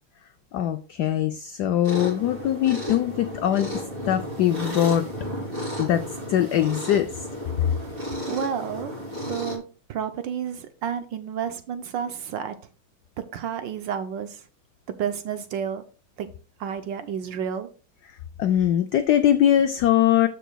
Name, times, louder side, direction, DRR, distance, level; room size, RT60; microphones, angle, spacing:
voice 1, 0.5-3.8 4.1-5.1 5.8-6.0 6.3-7.2 18.4-20.3, left 11 dB, 85° left, 9 dB, 0.9 m, -22 dB
sound 1, 1.8-9.6, left 1 dB, 25° right, 3.0 m, -33 dB
voice 2, 8.3-8.9 9.3-9.6 9.9-12.5 13.3-14.4 15.0-15.8 16.2-16.3 16.6-17.7, right 8 dB, 70° right, 9 dB, 1.2 m, -30 dB
13.5 x 5.1 x 2.3 m, 0.37 s
omnidirectional pair, 2.3 m